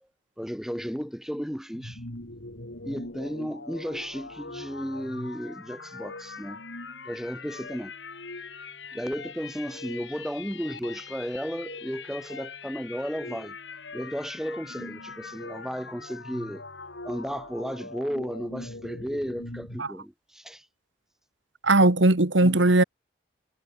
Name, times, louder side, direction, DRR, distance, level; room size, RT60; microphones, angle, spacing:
voice 1, 0.4-2.0 2.8-6.6 7.1-7.9 8.9-13.6 13.9-16.6 17.0-20.6 22.4-22.6, equal, ahead, 3.4 m, -34 dB
sound 1, 1.7-19.9, left 3 dB, 75° left, 4.3 m, -41 dB
voice 2, 21.6-22.8, right 2 dB, 80° right, 1.8 m, -19 dB
head